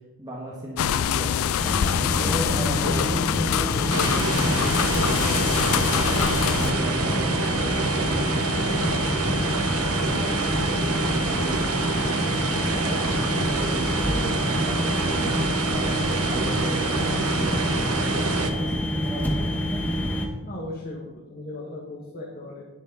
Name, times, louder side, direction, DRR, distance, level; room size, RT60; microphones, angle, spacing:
voice 1, 0.2-1.5 2.2-9.5 9.9-12.3 12.7-15.3 15.7-19.7, right 1 dB, 20° right, -4 dB, 1.6 m, -36 dB
sound 1, 0.8-6.7, left 9 dB, 65° left, 0.3 m, -25 dB
sound 2, 1.6-20.3, equal, 10° left, 1.3 m, -27 dB
sound 3, 3.9-18.5, right 3 dB, 75° right, 1.1 m, -27 dB
voice 2, 20.4-22.6, left 2 dB, 45° left, -3 dB, 1.7 m, -37 dB
11.0 x 10.0 x 4.1 m, 1.2 s
head